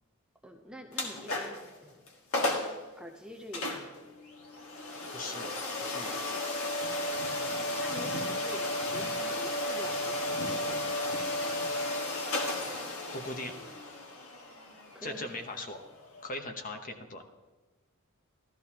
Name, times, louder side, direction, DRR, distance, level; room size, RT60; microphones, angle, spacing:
voice 1, 0.4-2.0 2.9-4.0 7.8-10.9 14.9-15.3, equal, 5° right, 2 dB, 0.6 m, -46 dB
sound 1, 0.9-1.7 2.1-2.2 2.3-2.8 3.5-16.3, left 1 dB, 70° left, 1.5 m, -34 dB
voice 2, 5.1-5.5 5.8-6.4 13.1-13.5 15.0-15.8 16.2-17.2, left 2 dB, 40° left, 5 dB, 1.0 m, -39 dB
14.0 x 13.0 x 2.9 m, 1.2 s
head